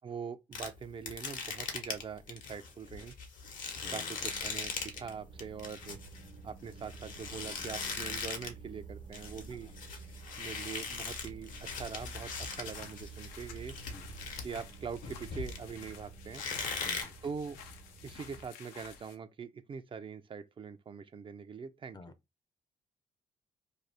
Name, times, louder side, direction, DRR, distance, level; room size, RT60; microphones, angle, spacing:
voice 1, 0.0-3.1 3.9-6.0 6.4-9.7 10.4-13.7 14.4-16.4 17.2-17.6 18.0-22.1, right 6 dB, 35° right, 0.4 m, -43 dB
sound 1, 0.5-5.1 5.4-8.6 8.9-15.9 16.3-17.0, left 5 dB, 70° left, 0.9 m, -40 dB
sound 2, 4.2-18.5, right 5 dB, 70° right, 0.9 m, -51 dB
sound 3, 11.8-19.2, left 7 dB, 90° left, 0.5 m, -52 dB
voice 2, 16.8-17.1 21.9-22.1, left 3 dB, 30° left, 0.5 m, -50 dB
2.6 x 2.3 x 3.3 m
supercardioid pair, 60°, 14 cm